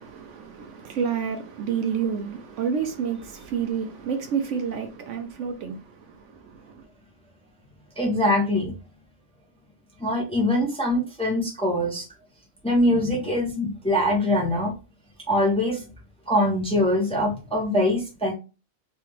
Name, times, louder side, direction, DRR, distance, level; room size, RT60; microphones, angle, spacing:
voice 1, 0.0-6.9, right 7 dB, 70° right, 0.8 m, -29 dB
voice 2, 8.0-8.7 10.0-12.0 12.6-14.7 15.3-15.9 16.3-18.3, left 1 dB, 5° left, 0.7 m, -23 dB
3.2 x 2.4 x 3.0 m
omnidirectional pair, 1.4 m